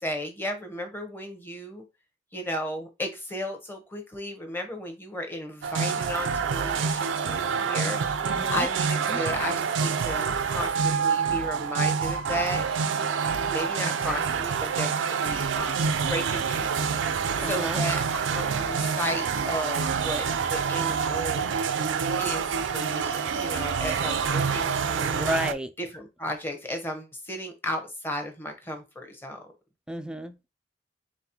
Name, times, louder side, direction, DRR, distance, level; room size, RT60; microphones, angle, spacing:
voice 1, 0.0-1.8 2.3-12.6 13.5-16.8 17.0-18.0 18.3-21.6 22.2-25.2 25.8-29.5, left 1 dB, 10° left, 0.8 m, -34 dB
sound 1, 5.6-25.5, right 6 dB, 75° right, 0.4 m, -27 dB
voice 2, 8.2-8.7 9.1-9.2 13.8-14.3 17.4-17.8 25.1-25.7 29.9-30.5, equal, 5° right, 0.3 m, -32 dB
4.0 x 3.9 x 2.9 m
head